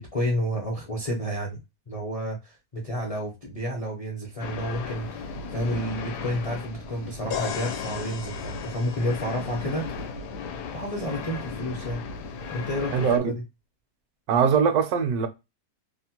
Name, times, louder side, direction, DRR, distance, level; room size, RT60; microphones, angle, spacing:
voice 1, 0.0-1.6 1.9-9.9 10.7-12.0 12.5-13.3, equal, 45° left, 0.4 m, -30 dB
sound 1, 4.4-13.2, left 4 dB, 85° left, 1.2 m, -36 dB
sound 2, 7.3-11.1, left 8 dB, 65° left, 1.1 m, -38 dB
voice 2, 12.9-13.3 14.3-15.3, right 6 dB, 75° right, 1.0 m, -21 dB
2.9 x 2.1 x 2.8 m
omnidirectional pair, 1.7 m